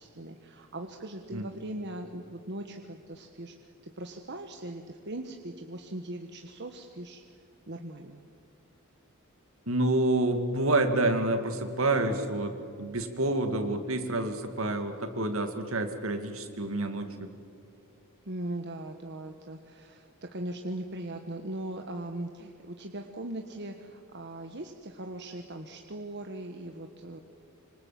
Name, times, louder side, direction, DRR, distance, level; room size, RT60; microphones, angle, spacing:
voice 1, 0.0-3.5 3.8-7.2 7.7-8.2 18.2-27.2, right 1 dB, 55° right, 4 dB, 1.4 m, -39 dB
voice 2, 9.7-17.3, right 2 dB, 70° right, 7 dB, 2.4 m, -28 dB
26.0 x 25.5 x 7.7 m, 2.7 s
head